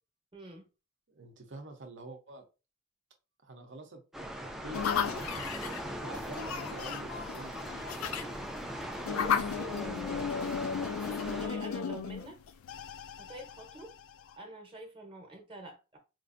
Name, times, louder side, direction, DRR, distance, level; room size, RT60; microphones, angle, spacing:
voice 1, 0.3-0.7 9.1-10.3 11.2-12.4 13.2-13.9 14.3-16.0, right 1 dB, 25° right, 0.8 m, -46 dB
voice 2, 1.2-2.4 3.4-7.5, right 2 dB, 60° right, 0.6 m, -47 dB
sound 1, 4.1-11.5, equal, ahead, 0.3 m, -40 dB
sound 2, 4.7-14.3, left 7 dB, 80° left, 0.3 m, -35 dB
4.3 x 2.5 x 2.5 m
head